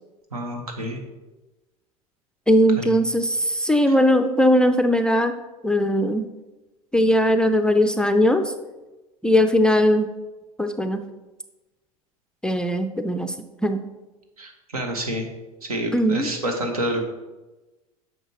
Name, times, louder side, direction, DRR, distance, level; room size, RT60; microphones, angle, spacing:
voice 1, 0.3-1.0 3.9-4.0 14.4-15.3 15.6-17.0, right 1 dB, 75° right, 4 dB, 1.3 m, -28 dB
voice 2, 2.5-5.4 5.6-6.3 6.9-8.5 9.2-10.1 10.6-11.0 12.4-13.3 13.6-13.8 15.9-16.3, equal, 5° left, 7 dB, 0.4 m, -19 dB
8.9 x 6.0 x 3.0 m, 1.1 s
figure-of-eight pair, 80°, 19 cm